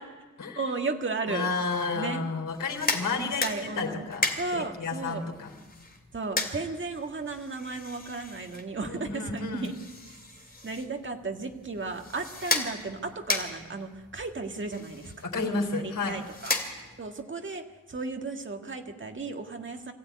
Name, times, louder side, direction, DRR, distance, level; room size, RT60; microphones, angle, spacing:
voice 1, 0.6-1.5 1.9-2.2 3.2-4.0 4.4-5.2 6.1-9.8 10.1-10.2 10.6-16.5 17.0-19.9, right 3 dB, 35° right, 4 dB, 2.0 m, -34 dB
voice 2, 1.3-5.5 8.8-9.7 15.2-16.2, left 4 dB, 65° left, 3 dB, 3.7 m, -31 dB
sound 1, 2.5-17.2, left 3 dB, 25° left, 2.7 m, -36 dB
24.5 x 16.0 x 9.5 m, 1.3 s
wide cardioid pair, 145°, 34 cm